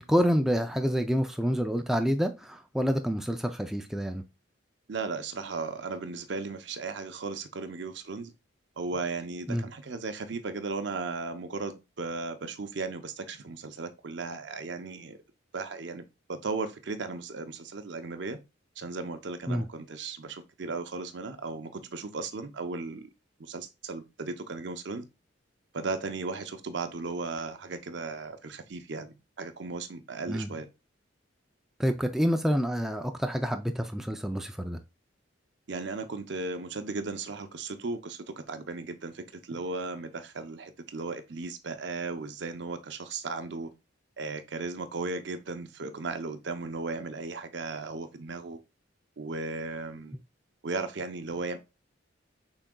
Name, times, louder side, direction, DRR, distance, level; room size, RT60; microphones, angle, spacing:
voice 1, 0.0-4.2 9.5-9.7 19.5-19.7 30.3-30.5 31.8-34.8, equal, ahead, 0.3 m, -28 dB
voice 2, 4.9-8.3 8.8-15.2 15.5-18.4 18.8-23.1 23.4-25.0 25.7-30.7 35.7-43.7 44.2-48.6 49.2-50.2 50.6-51.6, right 3 dB, 60° right, 0.6 m, -36 dB
6.0 x 3.9 x 2.2 m
head